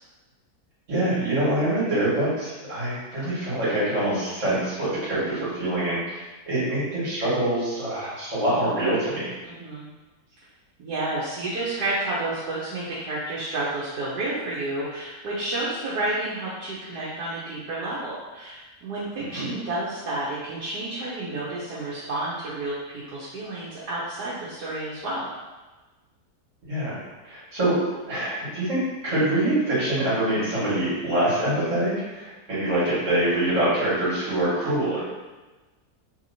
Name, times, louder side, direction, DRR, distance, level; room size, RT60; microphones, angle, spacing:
voice 1, 0.9-9.3 19.3-19.5 26.7-27.0 27.2-27.8 28.1-35.1, right 1 dB, 50° right, -10 dB, 1.9 m, -25 dB
voice 2, 9.4-9.9 10.8-25.3, right 2 dB, 80° right, -8 dB, 1.3 m, -30 dB
3.3 x 2.9 x 2.7 m, 1.2 s
omnidirectional pair, 1.7 m